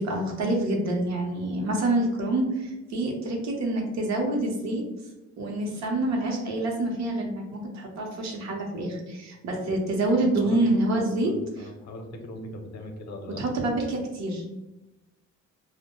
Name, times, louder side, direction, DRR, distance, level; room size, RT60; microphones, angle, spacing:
voice 1, 0.0-4.8 5.4-11.7 13.4-14.4, right 1 dB, 65° right, 1 dB, 0.7 m, -27 dB
voice 2, 5.7-6.1 10.4-10.6 11.1-13.4, left 1 dB, 65° left, 3 dB, 0.6 m, -41 dB
2.1 x 2.1 x 2.9 m, 0.99 s
cardioid pair, 90°, 30 cm